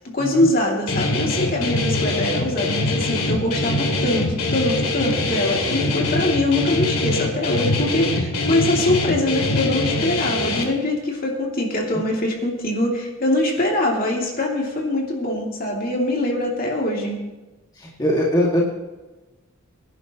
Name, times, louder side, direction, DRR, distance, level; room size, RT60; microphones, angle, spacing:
voice 1, 0.1-17.2, left 1 dB, 40° left, -1 dB, 2.8 m, -23 dB
Guitar, 0.9-10.6, left 2 dB, 85° left, 2.6 m, -23 dB
voice 2, 18.0-18.6, equal, 20° left, -4 dB, 2.1 m, -20 dB
23.5 x 11.0 x 3.1 m, 1.1 s
head